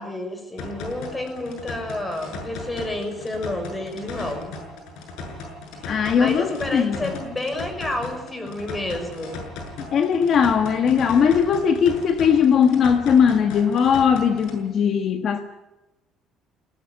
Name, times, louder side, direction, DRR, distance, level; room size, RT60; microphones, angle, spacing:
voice 1, 0.0-4.5 5.8-9.4, left 1 dB, 15° left, 6.0 m, -30 dB
sound 1, 0.6-14.6, left 3 dB, 85° left, 7.5 m, -37 dB
voice 2, 5.9-7.1 9.9-15.4, left 7 dB, 45° left, 1.5 m, -19 dB
20.5 x 19.0 x 9.4 m
cardioid pair, 145°, 0 cm